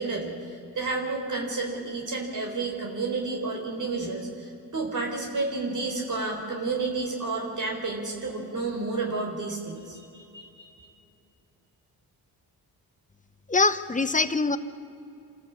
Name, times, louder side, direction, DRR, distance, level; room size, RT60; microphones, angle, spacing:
voice 1, 0.0-10.7, right 3 dB, 50° right, 1 dB, 4.1 m, -31 dB
voice 2, 13.5-14.6, left 3 dB, 20° left, 12 dB, 1.2 m, -23 dB
26.0 x 13.5 x 8.6 m, 2.7 s
cardioid pair, 65°, 40 cm